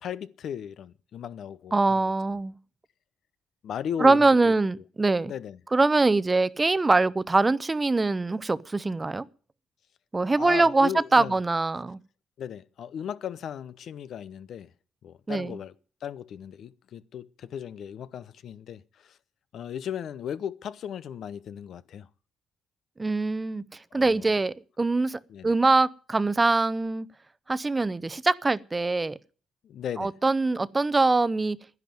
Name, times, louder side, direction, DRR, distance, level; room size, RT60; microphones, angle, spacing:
voice 1, 0.0-2.0 3.6-4.5 5.3-5.6 10.4-11.4 12.4-14.7 15.0-15.7 16.0-19.2 19.5-22.1 23.9-24.3 25.3-25.5 29.6-30.1, left 9 dB, 65° left, 0.7 m, -36 dB
voice 2, 1.7-2.6 4.0-5.3 5.7-9.3 10.1-12.0 15.3-15.6 23.0-27.1 27.5-29.2 30.0-31.6, right 3 dB, 20° right, 0.7 m, -23 dB
11.0 x 10.5 x 9.3 m
cardioid pair, 90°, 0 cm